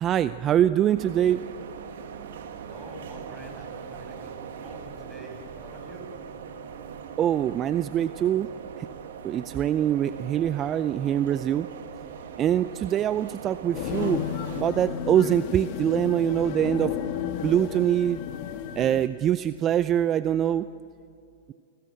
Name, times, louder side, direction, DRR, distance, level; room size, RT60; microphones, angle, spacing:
voice 1, 0.0-1.4 7.2-8.5 8.8-8.9 9.2-11.7 12.4-14.2 14.5-16.9 17.4-18.2 18.7-20.7, right 10 dB, 30° right, 14 dB, 0.5 m, -24 dB
sound 1, 1.0-14.6, right 7 dB, 65° right, 2.1 m, -41 dB
voice 2, 2.6-6.1, equal, 5° left, 1 dB, 6.8 m, -45 dB
sound 2, 13.7-19.1, left 10 dB, 50° left, 1.7 m, -32 dB
28.0 x 19.5 x 7.8 m, 2.4 s
hypercardioid pair, 110°, 0 cm